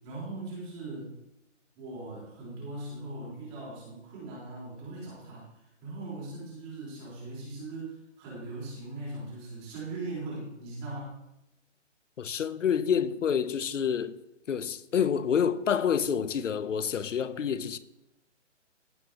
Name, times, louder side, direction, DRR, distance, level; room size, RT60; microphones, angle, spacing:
voice 1, 0.0-1.1 1.8-11.1 12.7-12.8, right 2 dB, 20° right, 4.1 m, -40 dB
voice 2, 12.2-14.2 14.5-17.8, left 7 dB, 80° left, 0.8 m, -28 dB
16.0 x 6.3 x 2.9 m
hypercardioid pair, 165°, 37 cm